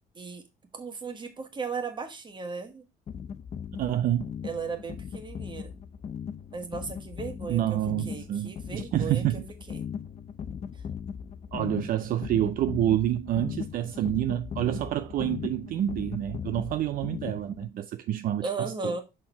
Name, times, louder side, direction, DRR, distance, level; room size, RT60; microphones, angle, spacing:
voice 1, 0.7-2.8 4.4-5.7 6.5-9.4 9.7-9.8 18.4-19.0, right 4 dB, 25° right, 1.4 m, -36 dB
sound 1, 3.1-17.7, left 7 dB, 40° left, 0.5 m, -38 dB
voice 2, 3.8-4.3 7.5-9.5 11.5-18.9, right 12 dB, 55° right, 0.4 m, -28 dB
5.7 x 4.3 x 4.5 m
cardioid pair, 110°, 17 cm